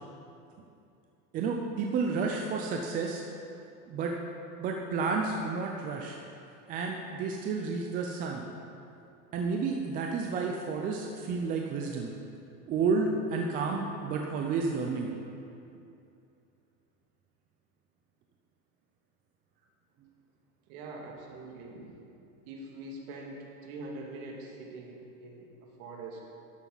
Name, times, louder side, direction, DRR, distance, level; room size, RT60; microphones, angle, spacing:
voice 1, 1.3-3.2 3.9-4.1 4.6-6.2 6.7-8.4 9.3-12.1 12.7-15.1, right 4 dB, 20° right, 1 dB, 0.5 m, -31 dB
voice 2, 20.7-21.9 22.5-26.2, right 2 dB, 55° right, -1 dB, 2.5 m, -43 dB
12.0 x 11.5 x 4.0 m, 2.6 s
supercardioid pair, 140°, 49 cm